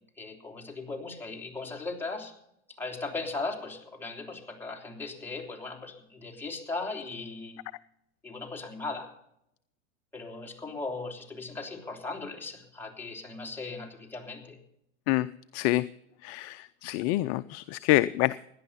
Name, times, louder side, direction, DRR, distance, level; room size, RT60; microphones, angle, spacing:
voice 1, 0.2-2.3 2.8-7.6 8.2-9.1 10.1-14.6, left 3 dB, 5° left, 0 dB, 3.0 m, -38 dB
voice 2, 15.5-15.9 16.2-18.3, left 17 dB, 40° left, 14 dB, 0.5 m, -26 dB
17.0 x 11.0 x 5.6 m, 0.77 s
supercardioid pair, 120°, 38 cm